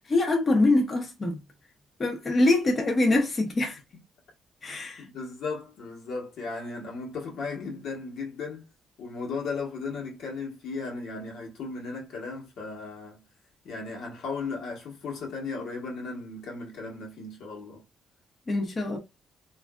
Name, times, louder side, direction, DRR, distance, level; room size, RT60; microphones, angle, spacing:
voice 1, 0.1-1.4 2.0-3.8 4.6-5.0 18.5-19.0, left 2 dB, 35° left, 0.9 m, -24 dB
voice 2, 5.0-8.7 9.0-13.2 13.6-17.8, left 4 dB, 75° left, 1.3 m, -36 dB
3.2 x 2.5 x 2.4 m
cardioid pair, 90°, 0 cm